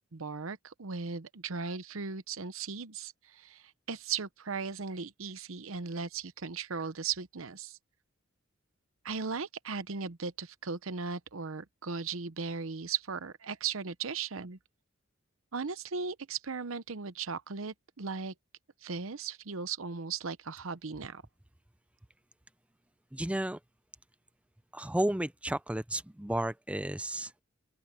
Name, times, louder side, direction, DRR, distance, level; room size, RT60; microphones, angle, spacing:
voice 1, 0.0-7.8 9.0-14.6 15.5-18.3 18.8-21.2, right 5 dB, 75° right, 0.9 m, -37 dB
voice 2, 23.1-23.6 24.7-27.3, right 1 dB, 5° right, 0.5 m, -32 dB
open air
head